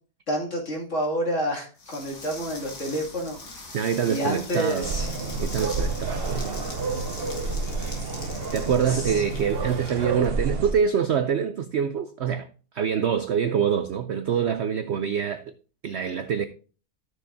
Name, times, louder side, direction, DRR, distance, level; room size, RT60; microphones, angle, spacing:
voice 1, 0.3-3.6 4.1-5.1 8.9-9.2, equal, 45° left, 2.7 m, -29 dB
sound 1, 1.8-10.8, left 3 dB, 80° left, 2.8 m, -42 dB
voice 2, 3.7-5.0 5.4-6.6 8.5-12.5 12.7-15.5 15.8-16.5, right 7 dB, 65° right, 0.6 m, -25 dB
sound 2, 4.8-10.7, right 3 dB, 45° right, 0.9 m, -29 dB
14.0 x 6.4 x 2.6 m
omnidirectional pair, 1.7 m